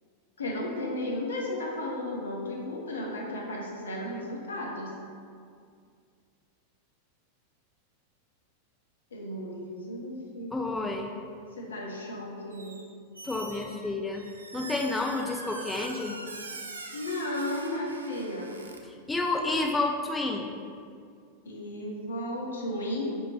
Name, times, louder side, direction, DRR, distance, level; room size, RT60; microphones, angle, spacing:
voice 1, 0.4-4.9 9.1-10.9 11.6-12.8 16.9-18.5 21.5-23.0, left 1 dB, 70° left, -2 dB, 0.7 m, -34 dB
voice 2, 10.5-11.1 13.2-14.3 14.5-16.2 19.1-20.5, left 2 dB, 10° left, 1 dB, 0.3 m, -30 dB
Squeak, 12.5-12.9 13.1-18.8, right 3 dB, 75° right, 0.4 m, -43 dB
5.6 x 2.6 x 3.1 m, 2.2 s
figure-of-eight pair, 90°, 0 cm